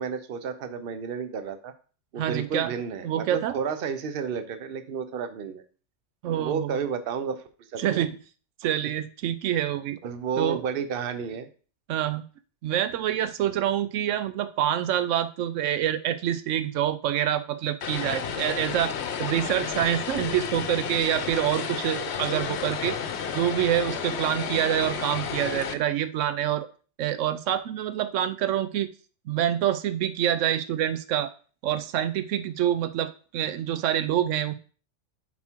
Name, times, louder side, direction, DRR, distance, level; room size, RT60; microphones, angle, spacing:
voice 1, 0.0-1.7 2.1-5.6 6.3-7.4 7.7-8.1 10.0-11.5, right 6 dB, 55° right, 9 dB, 0.9 m, -31 dB
voice 2, 2.2-2.7 3.0-3.6 6.2-6.7 7.8-8.2 8.6-10.0 10.4-10.6 11.9-12.2 12.6-23.0 23.3-26.7 27.0-28.9 29.3-31.3 31.6-34.5, right 11 dB, 85° right, 12 dB, 0.9 m, -26 dB
Vehicle, 17.8-25.7, left 7 dB, 65° left, 0.9 m, -32 dB
7.1 x 4.3 x 4.5 m, 0.39 s
omnidirectional pair, 1.2 m